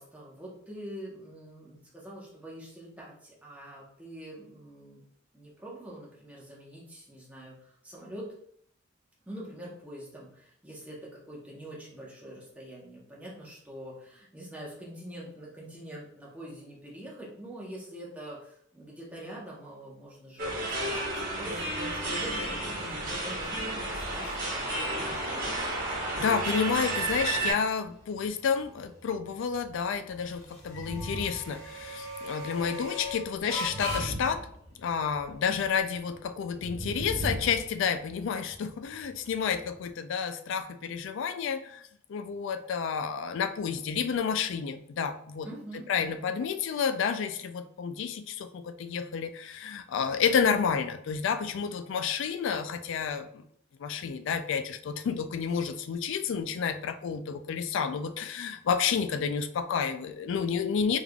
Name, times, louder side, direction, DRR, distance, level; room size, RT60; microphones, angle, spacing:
voice 1, 0.0-5.0 5.3-8.2 9.3-25.6 45.4-46.3, right 1 dB, 5° right, -5 dB, 1.0 m, -45 dB
sound 1, 20.4-27.5, right 2 dB, 45° right, 1.2 m, -32 dB
sound 2, 22.9-39.9, left 1 dB, 20° left, 1.2 m, -43 dB
voice 2, 26.2-34.5 34.8-41.8 42.1-45.5 45.9-53.4 53.8-61.0, left 6 dB, 65° left, 10 dB, 0.3 m, -30 dB
sound 3, 30.6-31.5 31.8-32.0 33.5-35.1 36.5-37.8, right 1 dB, 70° right, 0.8 m, -37 dB
3.5 x 3.5 x 2.3 m, 0.67 s
head